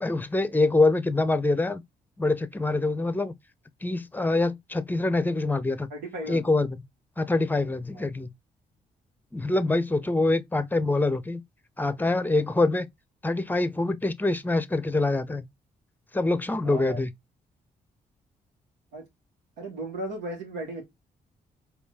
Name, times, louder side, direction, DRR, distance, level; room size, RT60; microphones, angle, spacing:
voice 1, 0.0-1.8 2.2-3.3 3.8-5.9 6.3-6.8 7.2-8.3 9.3-11.4 11.8-12.9 13.2-15.4 16.1-17.1, left 2 dB, 10° left, 0.6 m, -25 dB
voice 2, 5.9-6.5 7.9-8.0 16.6-17.0 18.9-19.1 19.6-20.8, right 1 dB, 90° right, 1.5 m, -35 dB
4.4 x 2.7 x 2.4 m
supercardioid pair, 50°, 18 cm